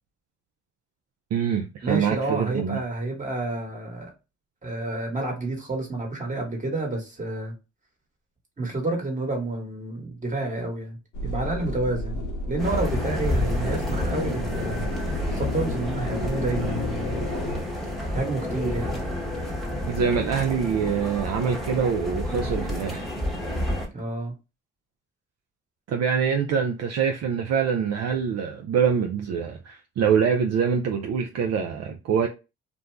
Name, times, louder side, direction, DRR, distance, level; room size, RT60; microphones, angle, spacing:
voice 1, 1.3-2.8 19.9-23.2 25.9-32.3, right 7 dB, 60° right, 0.5 m, -25 dB
voice 2, 1.8-4.1 4.6-7.5 8.6-17.3 18.1-19.0 23.9-24.4, right 2 dB, 25° right, 1.3 m, -30 dB
sound 1, 11.1-17.6, left 2 dB, 80° left, 0.7 m, -32 dB
sound 2, 12.6-23.9, left 1 dB, ahead, 1.0 m, -30 dB
2.5 x 2.2 x 3.2 m
cardioid pair, 90°, 30 cm